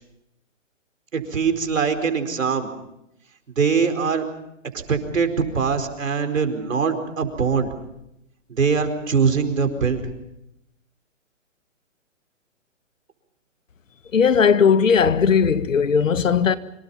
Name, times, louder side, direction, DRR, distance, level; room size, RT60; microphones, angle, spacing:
voice 1, 1.1-2.7 3.6-4.3 4.7-7.7 8.5-10.0, right 5 dB, 85° right, 4.7 m, -22 dB
voice 2, 14.1-16.6, left 6 dB, 80° left, 1.7 m, -17 dB
26.0 x 25.5 x 5.7 m
hypercardioid pair, 160°, 38 cm